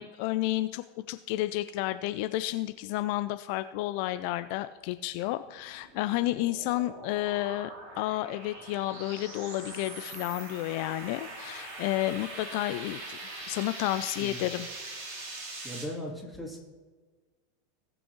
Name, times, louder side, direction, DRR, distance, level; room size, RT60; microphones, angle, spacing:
voice 1, 0.0-7.7 8.0-13.2 13.5-14.7, left 16 dB, 55° left, 12 dB, 0.3 m, -31 dB
sound 1, 5.3-15.9, right 2 dB, 55° right, 2.6 m, -42 dB
voice 2, 15.6-16.6, equal, ahead, -3 dB, 2.7 m, -38 dB
18.0 x 6.2 x 3.1 m, 1.4 s
figure-of-eight pair, 85°, 0 cm